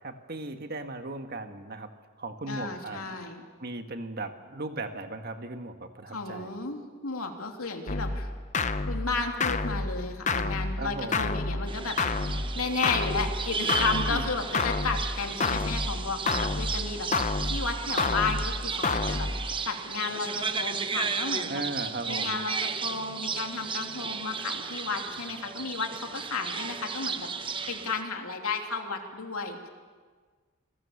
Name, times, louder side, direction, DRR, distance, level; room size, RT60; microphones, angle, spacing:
voice 1, 0.0-1.9 2.2-3.2 3.6-6.5 10.8-11.3 14.1-14.3 21.5-22.4, right 2 dB, 45° right, 7 dB, 1.7 m, -37 dB
voice 2, 2.5-3.4 6.1-8.3 8.9-12.0 12.5-21.6 22.1-29.7, left 4 dB, 85° left, 3 dB, 3.0 m, -33 dB
sound 1, 7.9-19.6, left 3 dB, 35° left, 0.8 m, -30 dB
sound 2, 11.7-28.0, right 5 dB, 25° right, 0.9 m, -34 dB
28.0 x 21.0 x 7.2 m, 1.5 s
head